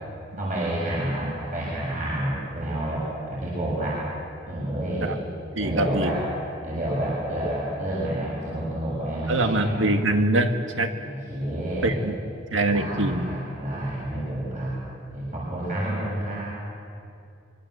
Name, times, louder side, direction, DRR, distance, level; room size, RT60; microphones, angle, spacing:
voice 1, 0.4-4.0 4.4-5.2 5.6-6.2 6.6-9.9 11.0-11.9 12.7-14.7 15.1-16.4, right 1 dB, 40° right, -6 dB, 7.3 m, -29 dB
voice 2, 5.6-6.1 9.3-10.9 11.8-12.2 12.5-13.3, right 2 dB, 85° right, 6 dB, 1.9 m, -23 dB
25.5 x 24.0 x 8.1 m, 2.5 s
head